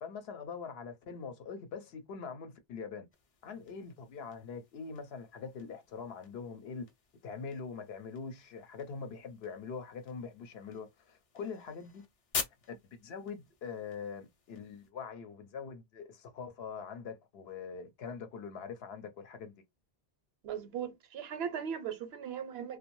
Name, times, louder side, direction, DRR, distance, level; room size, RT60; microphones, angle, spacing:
voice 1, 0.0-3.1 3.4-6.9 7.2-12.0 12.4-19.5, left 5 dB, 70° left, 0.8 m, -43 dB
sound 1, 3.1-14.9, left 5 dB, 45° left, 0.5 m, -47 dB
voice 2, 20.4-22.8, right 8 dB, 70° right, 0.8 m, -38 dB
2.5 x 2.2 x 2.9 m
omnidirectional pair, 1.1 m